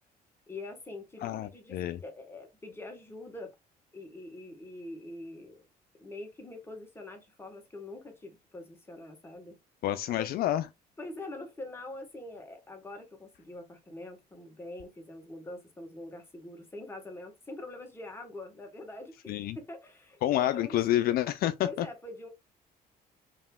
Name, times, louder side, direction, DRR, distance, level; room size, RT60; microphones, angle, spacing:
voice 1, 0.5-3.5 3.9-5.6 6.0-9.6 10.1-10.3 11.0-20.8 21.6-22.3, left 2 dB, 15° left, 1.4 m, -44 dB
voice 2, 1.2-2.0 9.8-10.6 19.3-19.6 20.2-21.9, left 13 dB, 65° left, 0.4 m, -28 dB
5.3 x 2.8 x 2.3 m
cardioid pair, 110°, 17 cm